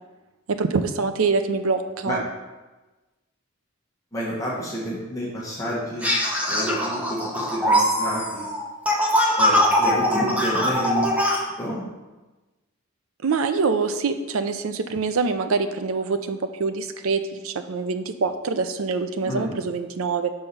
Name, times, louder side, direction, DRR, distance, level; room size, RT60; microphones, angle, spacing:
voice 1, 0.5-2.2 13.2-20.3, right 4 dB, 80° right, 9 dB, 0.5 m, -25 dB
voice 2, 4.1-6.1 6.5-8.4 9.4-11.1 11.6-11.8 19.3-19.4, equal, 15° left, -6 dB, 1.2 m, -29 dB
sound 1, 6.0-11.4, equal, 5° right, 0.9 m, -22 dB
5.6 x 4.5 x 5.4 m, 1.2 s
head